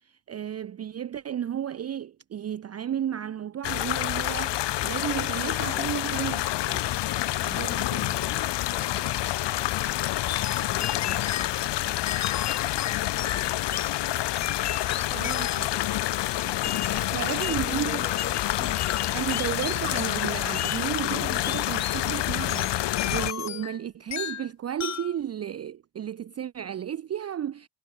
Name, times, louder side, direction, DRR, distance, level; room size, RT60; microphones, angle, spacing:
voice 1, 0.0-7.0 7.4-8.2 15.1-15.7 16.4-18.0 19.1-27.7, right 9 dB, 35° right, 0.6 m, -33 dB
sound 1, 3.6-23.3, left 15 dB, 70° left, 0.9 m, -28 dB
voice 2, 5.7-6.6 10.5-12.0 14.7-16.0 16.3-19.3, left 3 dB, 15° left, 5.3 m, -46 dB
sound 2, 10.3-11.5 12.1-13.9 14.4-15.8 16.6-17.7 18.2-20.3 20.5-20.8 21.4-22.0 22.5-23.8 24.1-24.5 24.8-25.1, left 10 dB, 40° left, 0.7 m, -35 dB
wide cardioid pair, 175°, 44 cm